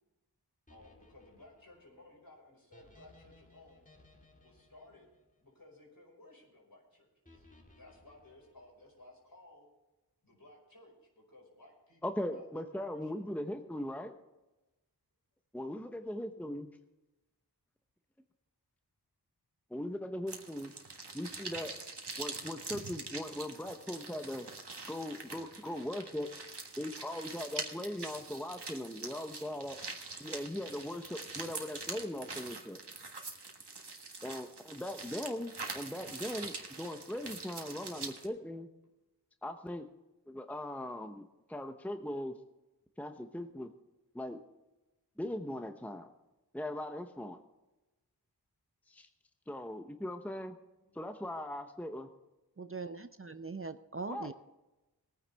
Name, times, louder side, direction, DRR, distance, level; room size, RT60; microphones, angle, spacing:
voice 1, 0.7-3.8 4.4-5.1 5.4-7.5 7.8-9.7 10.2-13.5 16.1-16.2 50.8-51.1, left 2 dB, 60° left, -1 dB, 5.2 m, -58 dB
sound 1, 0.7-6.0 7.2-9.2, left 1 dB, 20° left, 2.4 m, -62 dB
voice 2, 12.0-14.2 15.5-16.7 19.7-20.7 21.1-21.8 22.2-24.5 24.9-26.3 26.8-29.8 30.2-32.8 34.2-38.7 39.4-39.9 40.3-42.4 43.0-43.7 44.1-44.4 45.2-46.1 46.5-47.4 48.9-49.1 49.5-50.6 50.9-52.1 54.1-54.3, left 1 dB, 5° left, 6 dB, 0.9 m, -39 dB
sound 2, 20.3-38.3, right 3 dB, 80° right, 1.6 m, -44 dB
voice 3, 52.6-54.3, right 4 dB, 35° right, 11 dB, 0.6 m, -41 dB
20.5 x 9.6 x 3.5 m, 1.0 s
wide cardioid pair, 45°, 40 cm